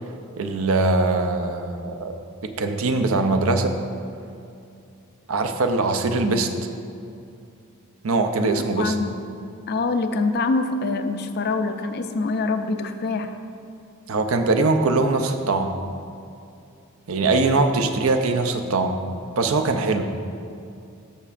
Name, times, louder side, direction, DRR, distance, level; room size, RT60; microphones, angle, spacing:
voice 1, 0.4-2.1 2.4-3.7 5.3-6.5 8.0-8.9 14.1-15.8 17.1-19.0 19.4-20.1, right 3 dB, 65° right, 6 dB, 0.6 m, -22 dB
voice 2, 8.8-9.2 9.7-13.4, left 3 dB, 45° left, 8 dB, 0.4 m, -25 dB
13.5 x 5.8 x 2.5 m, 2.6 s
head